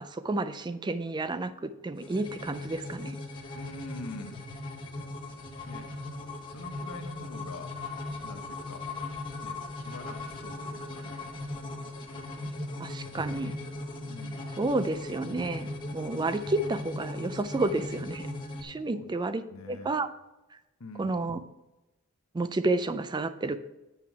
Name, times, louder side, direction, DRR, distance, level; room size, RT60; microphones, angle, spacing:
voice 1, 0.0-3.2 12.8-13.5 14.6-18.3 18.6-20.1 21.0-21.4 22.3-23.6, right 2 dB, 20° right, 12 dB, 0.4 m, -31 dB
sound 1, 2.0-18.6, left 2 dB, 20° left, 1.1 m, -38 dB
voice 2, 3.5-4.4 5.6-5.9 6.5-7.7 8.2-8.8 9.4-11.2 14.1-14.4 18.9-19.1 19.5-20.0 20.8-21.2, left 2 dB, 85° left, 7 dB, 0.9 m, -44 dB
7.6 x 5.7 x 4.7 m, 1.0 s
head